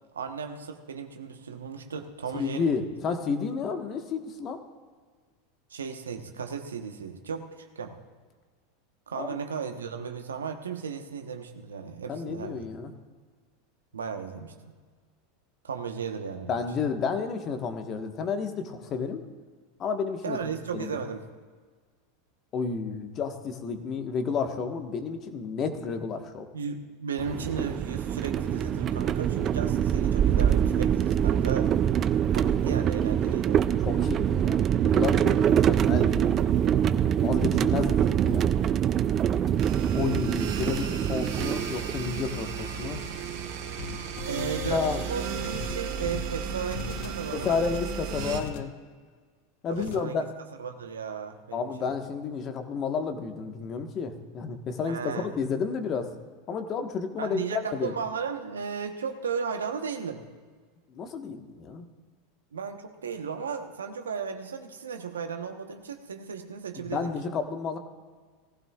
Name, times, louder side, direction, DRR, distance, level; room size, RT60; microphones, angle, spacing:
voice 1, 0.1-2.7 5.7-8.0 9.1-12.7 13.9-14.5 15.6-16.5 20.2-21.2 26.5-31.7 32.3-33.6 35.3-35.7 44.3-47.5 49.7-50.3 50.6-51.9 54.8-55.3 57.2-60.2 62.5-67.1, right 6 dB, 85° right, 6 dB, 1.0 m, -35 dB
voice 2, 2.3-4.6 9.1-9.4 12.1-12.9 16.5-19.2 19.8-20.4 20.7-21.0 22.5-26.5 33.8-36.8 37.2-38.6 39.9-43.0 44.7-45.0 47.3-48.7 49.6-50.3 51.5-55.0 55.3-56.1 56.5-57.9 60.9-61.9 66.8-67.8, left 5 dB, 40° left, 6 dB, 1.3 m, -31 dB
sound 1, 27.2-42.2, right 9 dB, 35° right, 0.5 m, -24 dB
sound 2, 39.6-48.4, right 7 dB, 65° right, 1.4 m, -35 dB
sound 3, 43.8-48.7 49.7-50.0, left 8 dB, 60° left, 0.6 m, -40 dB
19.0 x 15.0 x 2.4 m, 1.5 s
hypercardioid pair, 90°, 0 cm